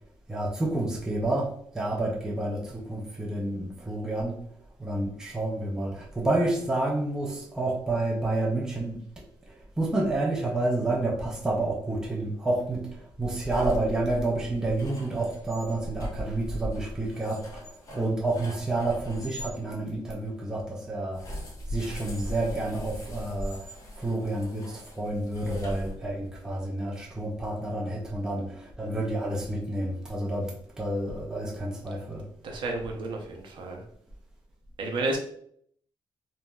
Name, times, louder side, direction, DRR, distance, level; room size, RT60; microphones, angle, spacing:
voice 1, 0.3-4.4 4.8-21.4 21.7-32.3, right 2 dB, 5° right, -2 dB, 0.4 m, -29 dB
sound 1, 13.2-19.5 21.1-26.4, equal, 40° left, 0.7 m, -39 dB
voice 2, 32.4-33.8 34.8-35.2, right 2 dB, 65° right, 1 dB, 0.6 m, -31 dB
2.9 x 2.6 x 2.2 m, 0.65 s
wide cardioid pair, 170°, 9 cm